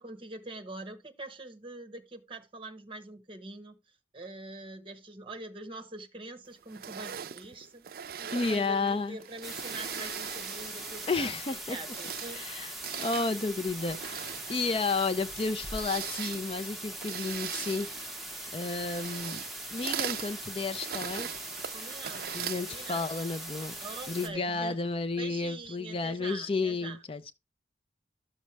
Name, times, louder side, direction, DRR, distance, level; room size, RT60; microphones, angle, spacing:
voice 1, 0.0-3.8 4.1-7.8 8.2-11.3 11.7-12.4 21.7-22.3 22.6-23.1 23.8-24.8 25.2-27.0, right 2 dB, 30° right, 1.1 m, -44 dB
sound 1, 6.7-11.3 11.7-23.3, right 9 dB, 55° right, 0.4 m, -41 dB
voice 2, 8.3-9.2 11.1-11.8 12.3-18.2 18.5-19.4 19.7-21.3 22.3-23.7 24.1-27.3, left 3 dB, 30° left, 0.4 m, -32 dB
sound 2, 9.4-24.3, right 1 dB, ahead, 1.3 m, -41 dB
sound 3, 15.1-19.8, equal, 80° left, 6.4 m, -51 dB
12.5 x 6.4 x 3.2 m
head